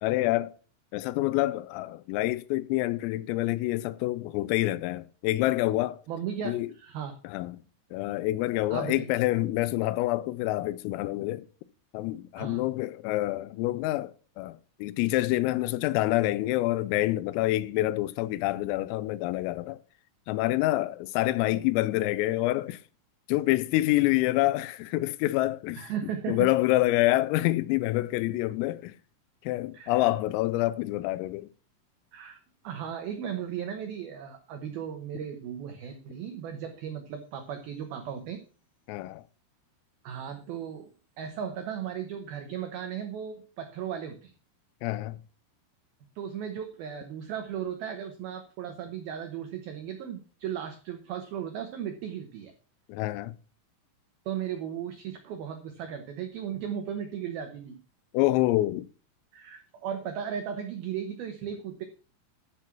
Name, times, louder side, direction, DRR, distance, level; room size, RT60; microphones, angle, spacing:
voice 1, 0.0-0.5 0.9-6.0 6.5-6.7 7.2-7.6 7.9-11.5 11.9-19.8 20.3-22.8 23.3-25.8 26.3-29.0 29.4-31.5 38.9-39.2 44.8-45.2 52.9-53.3 58.1-58.9, left 17 dB, 85° left, 3.3 m, -27 dB
voice 2, 6.1-7.1 8.7-9.1 12.4-12.6 25.8-26.5 29.7-30.0 32.1-32.4 32.6-38.4 40.0-40.9 41.2-44.3 46.2-52.5 54.3-57.8 59.3-61.8, right 8 dB, 90° right, 2.1 m, -36 dB
13.0 x 6.1 x 5.9 m
omnidirectional pair, 5.9 m